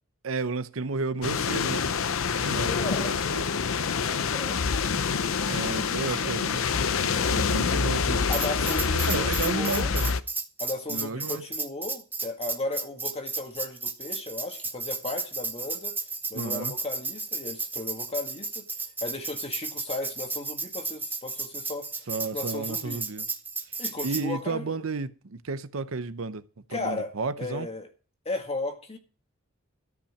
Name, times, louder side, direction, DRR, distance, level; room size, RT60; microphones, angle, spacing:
voice 1, 0.2-1.8 2.4-2.7 3.3-3.4 5.5-8.3 8.9-10.1 10.9-11.4 16.3-16.7 22.1-23.3 24.0-26.4 26.7-27.7, right 3 dB, 70° right, 0.8 m, -32 dB
sound 1, 1.2-10.2, left 5 dB, 70° left, 0.7 m, -26 dB
voice 2, 2.3-6.7 8.3-9.9 10.6-16.0 16.3-18.7 19.0-23.0 23.8-24.8 26.7-27.9 28.3-29.0, left 2 dB, 30° left, 1.9 m, -36 dB
Tambourine, 8.3-24.3, right 4 dB, 10° right, 0.9 m, -33 dB
13.5 x 5.7 x 8.4 m
head